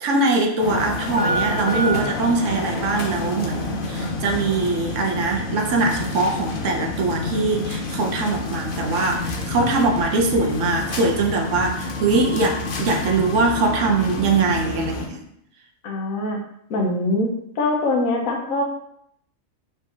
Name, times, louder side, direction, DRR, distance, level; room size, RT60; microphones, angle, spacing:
voice 1, 0.0-15.2, right 3 dB, 65° right, 2 dB, 1.0 m, -22 dB
sound 1, 0.6-15.1, left 2 dB, 50° left, 0.7 m, -28 dB
voice 2, 15.8-16.4 16.7-18.6, left 2 dB, 75° left, 1 dB, 1.2 m, -23 dB
5.1 x 3.5 x 2.8 m, 0.73 s
omnidirectional pair, 1.4 m